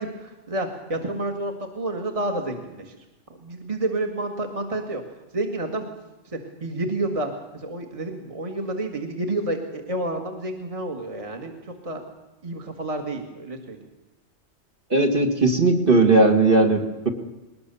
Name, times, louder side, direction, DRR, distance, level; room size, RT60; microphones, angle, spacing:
voice 1, 0.0-3.0 3.4-5.0 5.3-5.9 6.3-12.0 12.4-13.9, right 2 dB, 25° right, 4 dB, 1.7 m, -29 dB
voice 2, 14.9-17.1, right 2 dB, 45° right, 3 dB, 2.1 m, -18 dB
20.5 x 19.0 x 6.9 m, 1.1 s
omnidirectional pair, 1.3 m